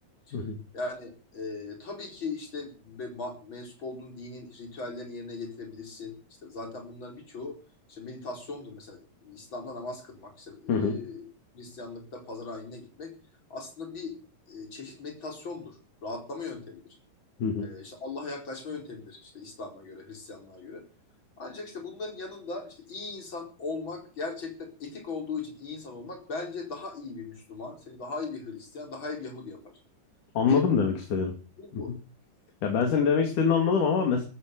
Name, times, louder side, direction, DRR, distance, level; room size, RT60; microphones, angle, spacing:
voice 1, 0.7-7.6 7.9-11.3 11.5-13.1 13.5-14.2 14.5-16.8 17.6-20.8 21.4-29.6 30.4-30.7 31.6-31.9, left 3 dB, 35° left, 4 dB, 5.1 m, -39 dB
voice 2, 10.7-11.0 17.4-17.7 30.4-31.3 31.7-32.0 32.6-34.2, left 6 dB, 65° left, 4 dB, 4.1 m, -24 dB
14.5 x 14.0 x 6.9 m, 0.37 s
omnidirectional pair, 4.0 m